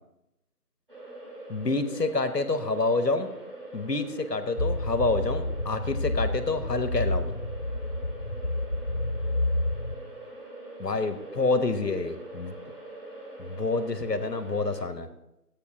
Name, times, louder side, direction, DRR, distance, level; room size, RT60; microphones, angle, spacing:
sound 1, 0.9-14.8, right 2 dB, 35° right, 3.3 m, -43 dB
voice 1, 1.5-3.3 3.7-7.3 10.8-12.5 13.4-15.1, left 3 dB, 90° left, 10 dB, 1.2 m, -28 dB
sound 2, 4.6-10.0, left 1 dB, 50° left, 2.0 m, -29 dB
14.5 x 8.5 x 3.7 m, 0.87 s
figure-of-eight pair, 175°, 47 cm